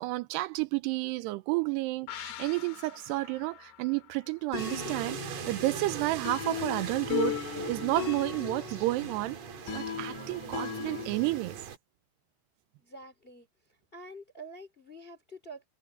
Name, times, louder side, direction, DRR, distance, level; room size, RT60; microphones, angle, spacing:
voice 1, 0.0-7.4 7.7-9.4 9.7-11.6, right 20 dB, 90° right, 2.8 m, -31 dB
sound 1, 2.1-5.5 5.8-5.9, left 12 dB, 80° left, 3.5 m, -47 dB
sound 2, 4.5-11.4, left 9 dB, 55° left, 2.6 m, -37 dB
sound 3, 4.6-11.8, right 7 dB, 50° right, 2.5 m, -41 dB
voice 2, 12.8-13.5 13.9-15.6, right 1 dB, 20° left, 2.0 m, -47 dB
omnidirectional pair, 4.8 m